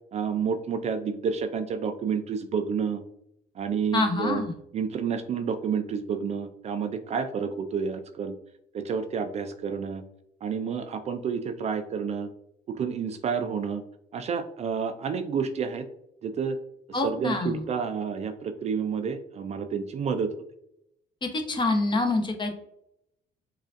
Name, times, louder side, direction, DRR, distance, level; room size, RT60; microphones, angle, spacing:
voice 1, 0.1-3.0 3.6-4.4 4.7-8.3 8.7-10.0 10.4-12.3 12.7-13.8 14.1-15.8 16.2-16.6 17.0-20.3, right 6 dB, 40° right, 8 dB, 0.3 m, -29 dB
voice 2, 3.9-4.5 16.9-17.6 21.3-22.5, left 2 dB, 25° left, 4 dB, 0.7 m, -26 dB
4.9 x 2.4 x 2.4 m, 0.76 s
cardioid pair, 110°, 17 cm